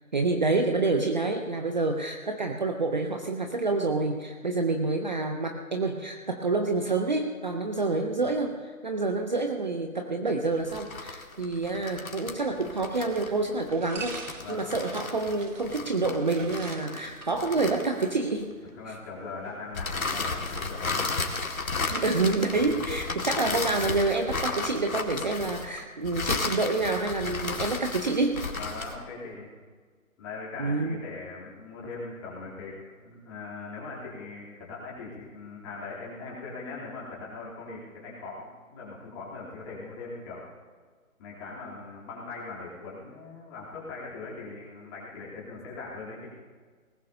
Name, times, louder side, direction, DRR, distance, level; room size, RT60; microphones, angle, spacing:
voice 1, 0.1-18.5 18.9-19.0 21.9-28.4 30.6-31.0, right 3 dB, 35° right, 4 dB, 0.7 m, -28 dB
sound 1, 10.6-18.4 19.7-29.0, left 3 dB, 70° left, 2.1 m, -34 dB
sound 2, 11.8-19.7, right 4 dB, 60° right, 1.7 m, -47 dB
voice 2, 14.4-14.7 18.8-21.2 25.3-25.5 28.5-29.5 30.2-40.4 41.2-46.3, left 3 dB, 20° left, -5 dB, 3.2 m, -40 dB
21.0 x 19.0 x 2.8 m, 1.5 s
figure-of-eight pair, 155°, 42 cm